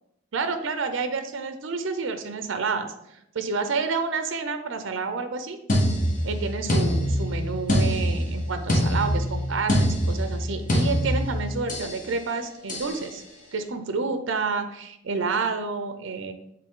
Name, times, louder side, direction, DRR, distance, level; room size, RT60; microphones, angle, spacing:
voice 1, 0.3-6.0 6.2-13.2 13.5-16.3, right 4 dB, 70° right, 9 dB, 0.5 m, -29 dB
sound 1, 5.7-12.0 12.7-13.0, equal, 40° left, 1.1 m, -24 dB
6.7 x 3.9 x 3.7 m, 0.83 s
head